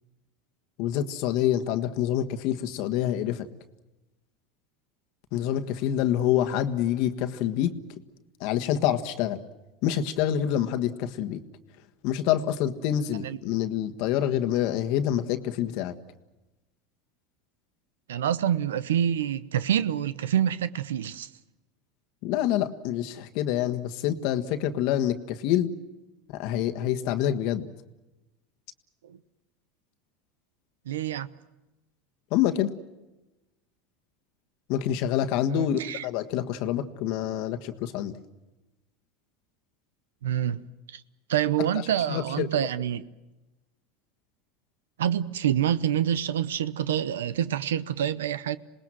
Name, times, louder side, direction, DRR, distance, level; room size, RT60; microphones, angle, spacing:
voice 1, 0.8-3.5 5.3-7.7 8.4-9.4 9.8-11.4 12.0-15.9 22.2-25.7 26.3-27.7 32.3-32.7 34.7-38.1 42.1-42.5, left 11 dB, 65° left, 1.5 m, -26 dB
voice 2, 18.1-21.3 29.0-29.2 30.9-31.3 35.5-36.0 40.2-41.0 41.3-43.0 45.0-48.6, right 10 dB, 90° right, 0.8 m, -27 dB
27.0 x 19.5 x 7.6 m
hypercardioid pair, 100°, 0 cm